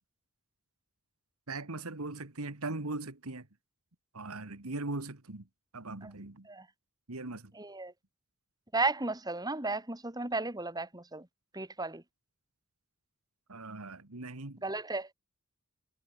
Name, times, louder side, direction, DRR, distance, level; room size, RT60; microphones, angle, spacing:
voice 1, 1.5-3.5 4.1-5.5 5.7-6.5 7.1-7.5 13.5-14.6, right 2 dB, 75° right, 2.0 m, -39 dB
voice 2, 7.5-7.9 8.7-11.3 11.5-12.0 14.6-15.1, right 3 dB, 15° right, 2.6 m, -34 dB
head